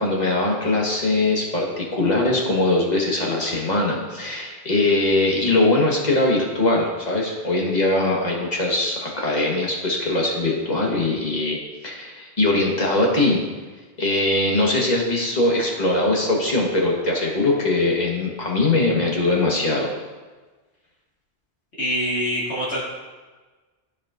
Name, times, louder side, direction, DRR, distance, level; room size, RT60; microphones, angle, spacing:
voice 1, 0.0-13.4 14.0-19.9, left 2 dB, 40° left, -2 dB, 1.4 m, -21 dB
voice 2, 21.8-22.8, equal, 75° left, -9 dB, 2.1 m, -24 dB
13.0 x 4.8 x 2.4 m, 1.3 s
omnidirectional pair, 1.1 m